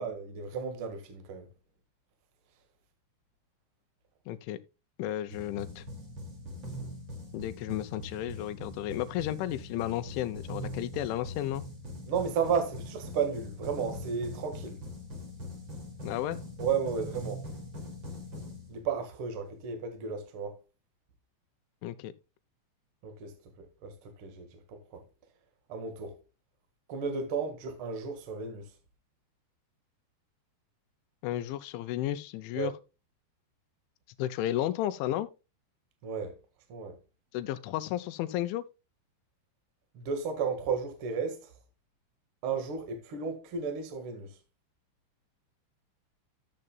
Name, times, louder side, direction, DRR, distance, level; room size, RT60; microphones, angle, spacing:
voice 1, 0.0-1.5 12.1-14.8 16.6-17.4 18.7-20.6 23.0-25.0 25.7-26.2 26.9-28.7 32.5-32.7 36.0-36.4 36.7-37.0 39.9-41.5 42.4-44.4, right 6 dB, 80° right, 1.2 m, -33 dB
voice 2, 4.3-4.6 5.0-5.9 7.3-11.6 16.0-16.4 21.8-22.1 31.2-32.7 34.2-35.3 37.3-38.6, left 13 dB, 85° left, 3.1 m, -33 dB
sound 1, 5.3-19.2, left 1 dB, 35° right, 2.1 m, -42 dB
13.5 x 7.7 x 2.3 m
omnidirectional pair, 5.4 m